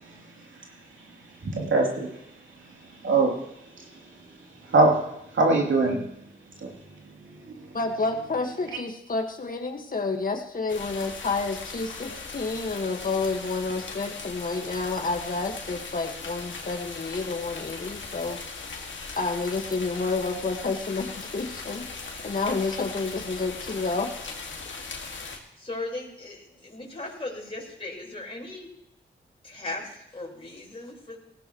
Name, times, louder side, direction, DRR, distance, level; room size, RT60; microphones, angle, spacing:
voice 1, 1.4-2.1 3.0-3.3 4.7-5.0 5.3-6.0 6.6-6.7, right 3 dB, 80° right, -1 dB, 3.0 m, -21 dB
voice 2, 7.7-18.6 19.2-24.1, left 3 dB, 45° left, 3 dB, 1.6 m, -30 dB
sound 1, 10.7-25.4, left 4 dB, 75° left, 2.0 m, -39 dB
voice 3, 25.6-28.7 29.4-31.2, left 2 dB, 30° left, -4 dB, 4.5 m, -37 dB
18.5 x 15.5 x 3.1 m, 0.77 s
cardioid pair, 40°, 20 cm